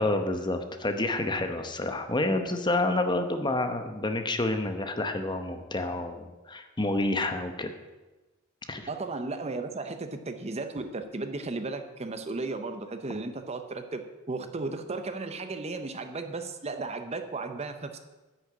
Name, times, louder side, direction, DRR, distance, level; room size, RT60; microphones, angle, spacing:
voice 1, 0.0-7.7 8.7-8.9, left 2 dB, 20° left, 7 dB, 0.9 m, -29 dB
voice 2, 8.9-14.0 14.3-18.0, right 3 dB, 30° right, 8 dB, 0.7 m, -35 dB
9.9 x 6.6 x 8.6 m, 1.1 s
head